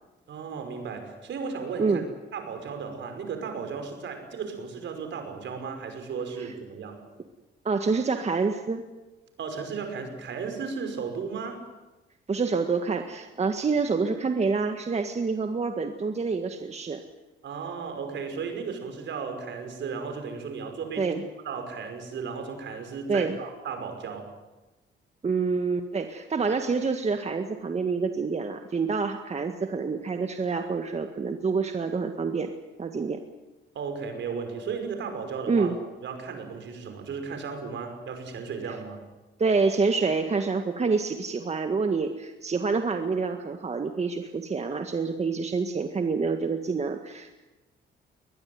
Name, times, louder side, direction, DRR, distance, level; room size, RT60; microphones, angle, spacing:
voice 1, 0.3-2.0 2.3-7.0 9.4-11.7 17.4-21.2 21.4-24.4 33.7-35.7 36.0-39.0, right 5 dB, 65° right, 6 dB, 5.6 m, -35 dB
voice 2, 7.7-8.8 12.3-17.0 21.0-21.2 23.1-23.4 25.2-32.5 32.8-33.2 35.5-35.7 39.4-47.3, right 4 dB, 35° right, 6 dB, 1.8 m, -27 dB
21.5 x 20.5 x 9.6 m, 1.1 s
cardioid pair, 90°, 20 cm